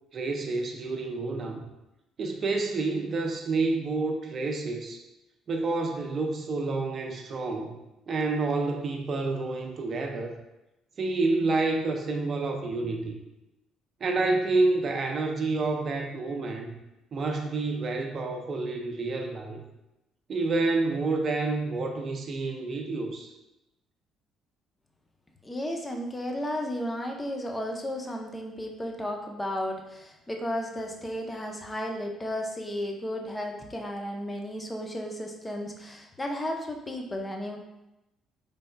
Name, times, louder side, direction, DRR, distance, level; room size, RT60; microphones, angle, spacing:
voice 1, 0.1-1.6 2.2-5.0 5.5-7.7 8.1-10.3 11.0-13.2 14.0-16.7 17.1-19.6 20.3-23.3, right 3 dB, 50° right, 3 dB, 0.6 m, -28 dB
voice 2, 25.4-37.6, left 1 dB, 20° left, 2 dB, 0.7 m, -34 dB
4.1 x 3.3 x 2.3 m, 0.93 s
hypercardioid pair, 60°, 0 cm